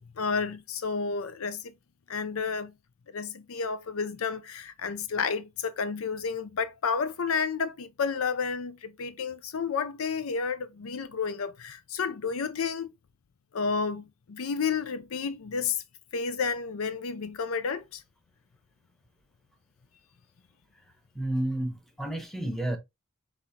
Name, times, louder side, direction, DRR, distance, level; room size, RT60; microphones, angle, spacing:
voice 1, 0.0-1.7 2.1-2.7 3.1-12.9 13.5-15.8 16.1-18.0, left 5 dB, 70° left, 0.5 m, -31 dB
voice 2, 21.1-22.8, right 1 dB, ahead, 1.0 m, -31 dB
5.3 x 3.5 x 2.7 m
head